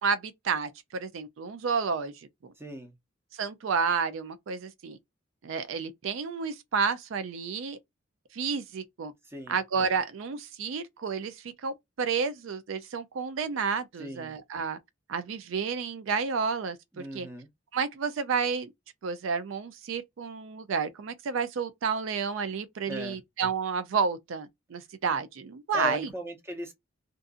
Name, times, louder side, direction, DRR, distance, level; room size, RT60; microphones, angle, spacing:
voice 1, 0.0-2.1 3.3-5.0 5.4-7.8 8.3-9.1 9.5-14.8 15.1-17.3 17.7-18.7 19.0-26.1, right 5 dB, 75° right, 0.4 m, -31 dB
voice 2, 2.6-2.9 9.2-9.6 14.0-14.4 16.9-17.5 22.9-23.2 25.7-26.7, left 2 dB, 10° right, 0.7 m, -37 dB
2.6 x 2.5 x 2.4 m
head